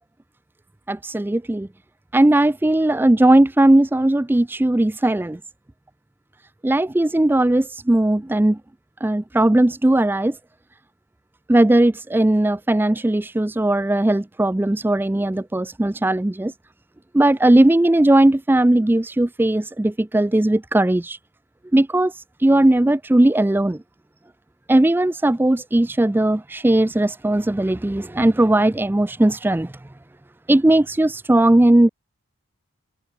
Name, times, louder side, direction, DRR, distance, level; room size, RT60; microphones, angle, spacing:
voice 1, 0.9-1.7 2.1-5.4 6.6-8.6 9.0-10.4 11.5-16.5 17.1-21.2 21.7-23.8 24.7-29.7 30.5-31.9, right 1 dB, 10° right, 0.3 m, -18 dB
head